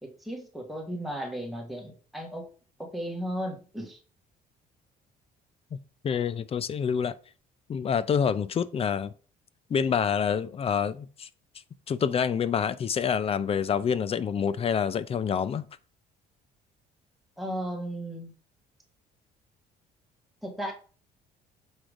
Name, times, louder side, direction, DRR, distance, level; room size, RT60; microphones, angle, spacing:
voice 1, 0.0-2.5 2.8-4.0 17.4-18.3 20.4-20.7, equal, ahead, 1.9 m, -35 dB
voice 2, 6.0-7.1 7.7-9.1 9.7-11.3 11.9-15.6, left 7 dB, 35° left, 0.5 m, -27 dB
6.3 x 3.7 x 5.0 m
cardioid pair, 110°, 17 cm